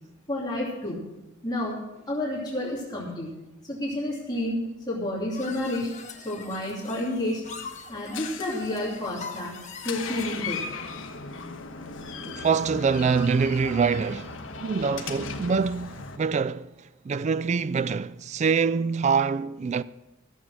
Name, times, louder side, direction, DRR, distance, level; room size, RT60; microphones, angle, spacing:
voice 1, 0.3-1.0 1.4-1.8 2.1-3.3 3.6-6.0 6.2-7.4 7.9-9.5 9.8-10.6, left 1 dB, 20° left, 2.8 m, -30 dB
sound 1, 5.3-10.9, left 5 dB, 40° left, 1.3 m, -42 dB
Door, 7.4-16.2, left 4 dB, 85° left, 1.2 m, -38 dB
voice 2, 12.2-16.7 17.0-19.8, right 5 dB, 35° right, 0.3 m, -25 dB
14.5 x 7.4 x 6.2 m
head